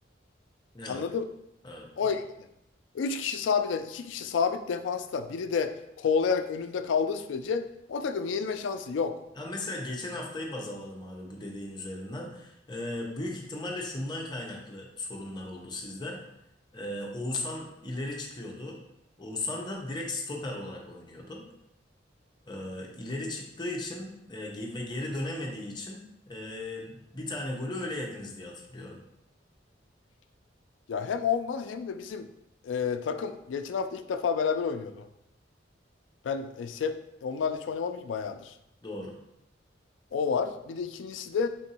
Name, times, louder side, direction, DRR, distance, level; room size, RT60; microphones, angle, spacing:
voice 1, 0.9-1.2 2.0-2.2 2.9-9.2 30.9-32.3 32.6-35.1 36.2-38.5 40.1-41.5, left 6 dB, 80° left, 9 dB, 0.3 m, -30 dB
voice 2, 1.6-2.2 9.4-16.2 16.7-18.8 19.2-21.4 22.5-29.0 38.8-39.1, left 1 dB, 25° left, -1 dB, 0.7 m, -36 dB
3.7 x 2.6 x 4.1 m, 0.82 s
head